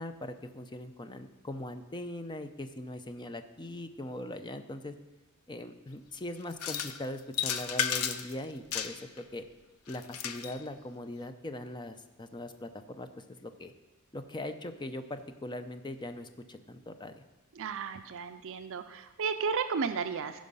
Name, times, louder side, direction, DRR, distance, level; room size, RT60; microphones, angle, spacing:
voice 1, 0.0-4.9 5.5-9.4 9.9-13.7 14.1-17.2, left 1 dB, 20° left, 9 dB, 0.6 m, -41 dB
sound 1, 6.5-7.0 7.3-8.3 8.7-9.2 9.9-10.6, left 8 dB, 70° left, 0.6 m, -33 dB
voice 2, 17.6-20.5, right 5 dB, 60° right, 8 dB, 0.4 m, -33 dB
15.5 x 5.2 x 5.5 m, 1.1 s
head